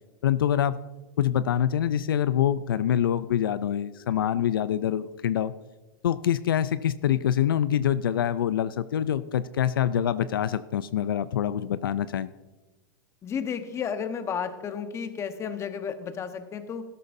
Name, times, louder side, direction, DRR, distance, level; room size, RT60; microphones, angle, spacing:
voice 1, 0.2-0.8 1.2-5.5 6.0-12.3, left 10 dB, 85° left, 14 dB, 0.4 m, -25 dB
voice 2, 13.2-16.8, left 7 dB, 25° left, 8 dB, 1.1 m, -32 dB
13.5 x 12.0 x 2.6 m, 1.1 s
hypercardioid pair, 120°, 11 cm